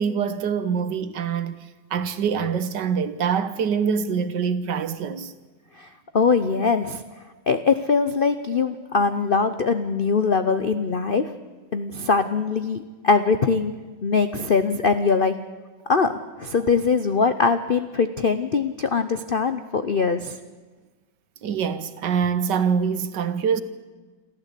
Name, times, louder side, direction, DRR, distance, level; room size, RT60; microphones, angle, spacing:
voice 1, 0.0-5.3 21.4-23.6, right 6 dB, 65° right, 1.6 m, -25 dB
voice 2, 5.7-7.0 7.5-11.3 11.7-13.7 14.0-15.3 15.9-20.4, left 5 dB, 75° left, 0.5 m, -22 dB
27.0 x 14.0 x 8.4 m
omnidirectional pair, 2.2 m